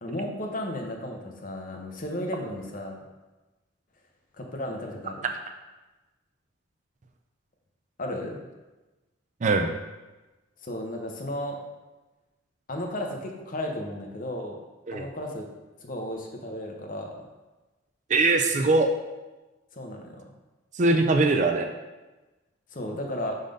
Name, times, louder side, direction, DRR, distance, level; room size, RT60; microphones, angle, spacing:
voice 1, 0.0-3.0 4.4-5.2 8.0-8.4 10.6-11.6 12.7-14.6 14.9-15.4 15.8-17.1 19.7-20.2 22.7-23.4, left 1 dB, 40° left, 1 dB, 0.8 m, -34 dB
voice 2, 18.1-18.9 20.8-21.7, right 3 dB, 35° right, 5 dB, 0.4 m, -21 dB
5.0 x 4.0 x 5.2 m, 1.1 s
head